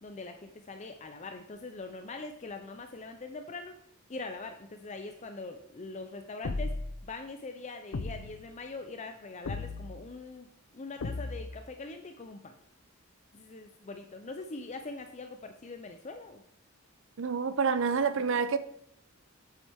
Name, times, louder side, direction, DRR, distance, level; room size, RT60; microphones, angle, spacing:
voice 1, 0.0-3.8 4.1-6.7 7.0-12.6 13.3-16.4, left 3 dB, 30° left, 0.5 m, -42 dB
sound 1, 6.4-7.1 7.9-8.5 9.5-10.1 11.0-11.6, left 3 dB, 80° left, 0.6 m, -36 dB
voice 2, 17.2-18.6, right 5 dB, 60° right, 0.6 m, -28 dB
8.3 x 7.6 x 3.5 m
head